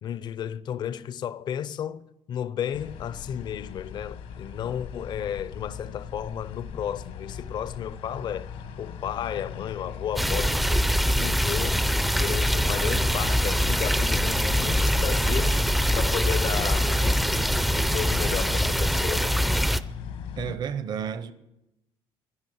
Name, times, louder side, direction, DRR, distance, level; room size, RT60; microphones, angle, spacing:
voice 1, 0.0-11.8 12.2-19.5, left 9 dB, 50° left, 0.6 m, -33 dB
sound 1, 2.7-20.6, left 7 dB, 75° left, 1.3 m, -39 dB
sound 2, 10.2-19.8, equal, ahead, 0.4 m, -23 dB
voice 2, 20.4-21.3, right 7 dB, 45° right, 0.7 m, -31 dB
11.5 x 11.0 x 9.1 m
cardioid pair, 150°, 10 cm